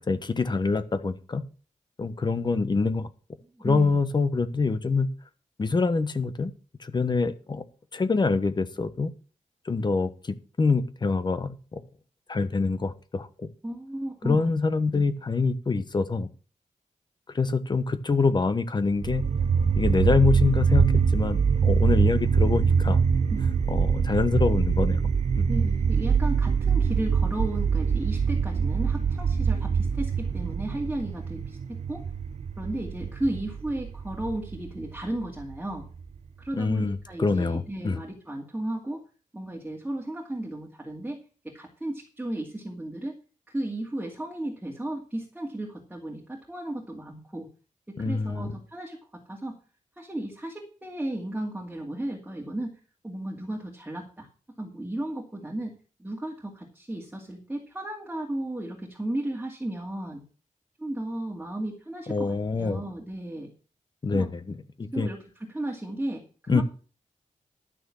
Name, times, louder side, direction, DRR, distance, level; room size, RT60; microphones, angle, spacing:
voice 1, 0.0-1.4 2.0-3.1 3.6-5.1 5.6-6.5 6.8-7.6 7.9-9.1 9.6-11.5 12.3-13.5 14.2-16.3 17.3-19.2 19.8-20.9 21.1-23.0 23.7-25.0 25.3-25.5 36.5-38.0 48.0-48.5 62.1-62.8 64.0-65.1 66.5-66.6, left 4 dB, 35° left, 11 dB, 1.2 m, -25 dB
voice 2, 3.6-4.0 13.6-14.5 14.9-15.1 23.3-23.6 25.5-32.0 32.6-35.8 36.4-39.0 39.3-41.2 41.5-43.2 43.5-47.5 48.0-49.0 49.3-49.6 50.0-52.8 53.0-54.3 54.6-60.2 60.8-63.5 64.1-64.3 64.9-66.6, right 1 dB, 10° right, -2 dB, 2.3 m, -34 dB
sound 1, 19.0-36.0, right 6 dB, 55° right, 0.7 m, -24 dB
12.0 x 6.6 x 7.1 m, 0.37 s
wide cardioid pair, 160°, 13 cm